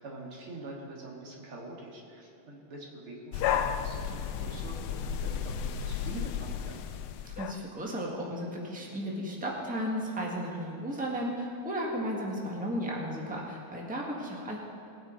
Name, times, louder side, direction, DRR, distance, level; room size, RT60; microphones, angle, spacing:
voice 1, 0.0-6.8, right 2 dB, 80° right, -2 dB, 2.9 m, -44 dB
sound 1, 3.3-7.6, left 8 dB, 85° left, 1.5 m, -33 dB
voice 2, 7.3-14.6, equal, 5° right, -2 dB, 1.5 m, -34 dB
20.0 x 9.2 x 4.0 m, 2.8 s
omnidirectional pair, 2.4 m